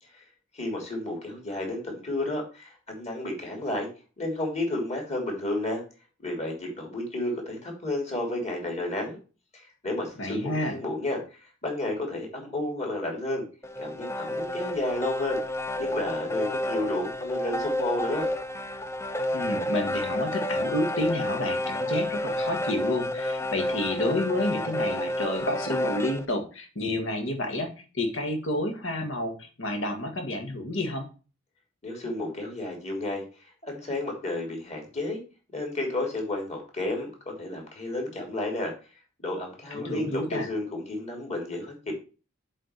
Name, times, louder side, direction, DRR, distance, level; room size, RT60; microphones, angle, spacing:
voice 1, 0.5-3.9 4.2-5.8 6.2-9.2 9.5-13.4 13.8-15.4 15.8-18.3 31.8-35.2 35.5-38.7 39.2-41.9, left 2 dB, 35° left, 1 dB, 3.2 m, -32 dB
voice 2, 10.2-10.8 19.3-31.1 39.7-40.5, left 1 dB, 65° left, 4 dB, 1.9 m, -30 dB
sound 1, 13.6-26.2, left 1 dB, 15° left, 0.6 m, -30 dB
7.5 x 4.4 x 6.7 m, 0.35 s
head